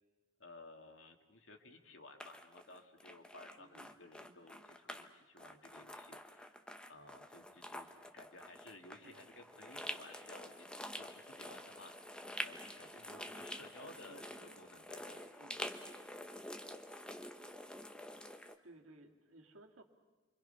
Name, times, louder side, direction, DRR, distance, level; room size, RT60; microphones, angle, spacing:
voice 1, 0.4-7.9 8.1-15.4, left 2 dB, 65° left, 4 dB, 2.2 m, -57 dB
sound 1, 2.2-5.1 5.4-18.6, left 1 dB, 5° left, 0.8 m, -48 dB
voice 2, 3.6-4.4 9.0-9.5 13.8-14.6 15.4-15.8 18.6-19.8, right 2 dB, 75° right, 2 dB, 2.3 m, -60 dB
28.5 x 24.0 x 5.7 m, 1.3 s
head